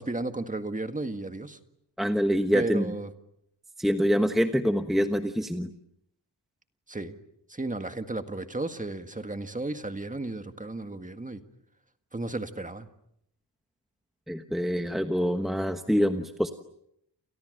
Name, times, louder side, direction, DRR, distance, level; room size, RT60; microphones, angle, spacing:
voice 1, 0.0-1.6 2.5-3.1 6.9-7.1 7.5-11.4 12.1-12.9, right 2 dB, 15° right, 8 dB, 1.8 m, -33 dB
voice 2, 2.0-2.9 3.8-5.7 14.3-16.5, equal, ahead, 6 dB, 1.2 m, -25 dB
29.5 x 29.0 x 6.7 m, 0.75 s
wide cardioid pair, 150°, 44 cm